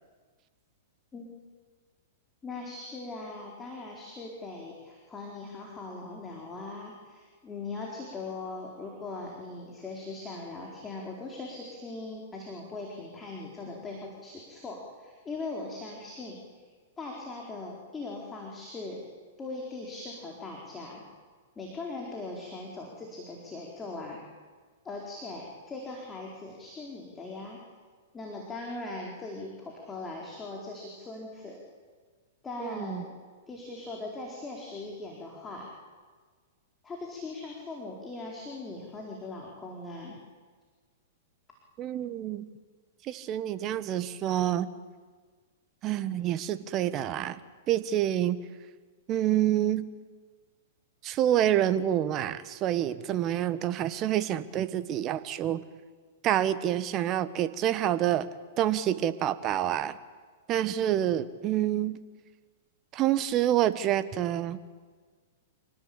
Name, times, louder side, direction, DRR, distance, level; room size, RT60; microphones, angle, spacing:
voice 1, 2.4-16.4 17.0-19.0 19.4-21.0 21.6-24.2 24.8-27.6 28.1-31.6 32.4-33.2 33.5-35.7 36.8-40.2, left 3 dB, 15° left, -1 dB, 4.5 m, -40 dB
voice 2, 32.6-33.0 41.8-42.5 43.0-44.7 45.8-47.4 47.7-48.4 49.1-49.9 51.0-55.6 56.2-58.3 58.6-60.0 60.5-62.0 62.9-64.6, right 11 dB, 35° right, 13 dB, 1.4 m, -27 dB
27.0 x 19.0 x 8.9 m, 1.5 s
hypercardioid pair, 115°, 0 cm